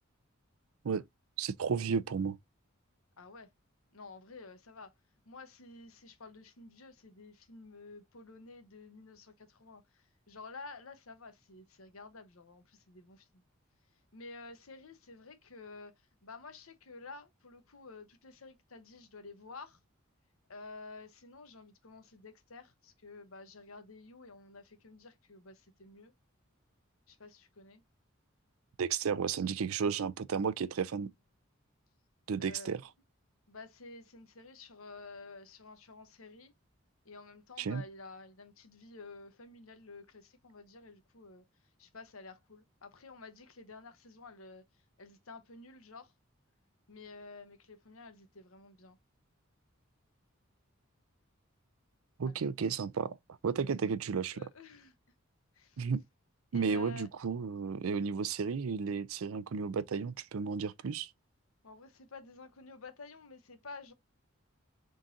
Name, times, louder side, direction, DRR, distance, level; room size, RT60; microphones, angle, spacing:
voice 1, 1.4-2.4 28.8-31.1 32.3-32.8 37.6-37.8 52.2-53.2 53.4-54.4 55.8-56.0 56.5-61.1, right 6 dB, 90° right, 0.5 m, -33 dB
voice 2, 3.2-3.5 3.9-4.9 5.2-13.4 14.1-19.8 20.5-26.1 27.1-27.8 32.4-32.8 33.5-36.5 37.0-41.4 41.8-46.1 46.9-49.0 52.3-52.4 53.8-53.9 54.3-55.0 55.5-55.9 56.5-57.1 61.6-63.9, left 3 dB, 80° left, 1.0 m, -51 dB
3.8 x 3.8 x 2.7 m
head